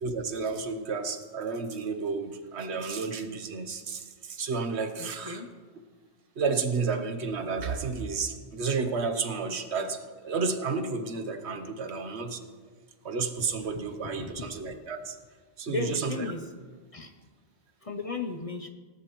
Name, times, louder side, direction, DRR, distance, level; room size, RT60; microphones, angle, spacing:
voice 1, 0.0-5.4 6.4-12.4 13.0-15.2 15.6-16.3, right 4 dB, 75° right, 8 dB, 1.2 m, -31 dB
voice 2, 5.0-5.5 14.0-14.6 15.7-16.4 16.9-17.1 17.8-18.7, left 3 dB, 40° left, 6 dB, 0.6 m, -35 dB
18.5 x 10.5 x 3.1 m, 1.5 s
omnidirectional pair, 1.1 m